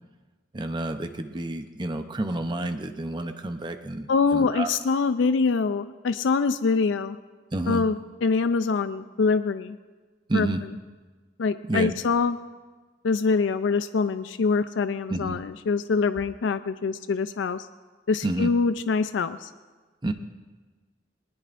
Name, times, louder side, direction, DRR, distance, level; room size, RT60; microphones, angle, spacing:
voice 1, 0.5-4.1 4.3-4.7 7.5-7.8 10.3-10.6 11.7-11.9 15.1-15.4 18.2-18.5 20.0-20.1, right 2 dB, 25° right, 7 dB, 0.6 m, -29 dB
voice 2, 4.1-7.2 7.7-8.0 8.2-9.8 10.3-10.5 11.4-12.4 13.0-17.7 18.1-19.5, left 4 dB, 80° left, 11 dB, 0.4 m, -24 dB
20.0 x 19.5 x 2.5 m, 1.4 s
head